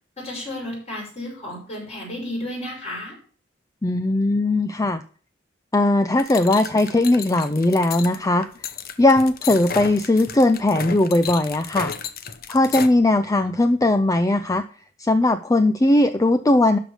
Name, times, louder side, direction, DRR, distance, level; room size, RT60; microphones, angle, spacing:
voice 1, 0.2-3.1, left 1 dB, 35° left, -2 dB, 6.0 m, -32 dB
voice 2, 3.8-5.0 5.7-8.5 9.0-11.9 12.5-14.6 15.0-16.8, left 2 dB, 20° left, 10 dB, 0.5 m, -19 dB
sound 1, 6.2-12.9, left 6 dB, 50° left, 0.9 m, -33 dB
12.5 x 5.2 x 6.5 m, 0.43 s
head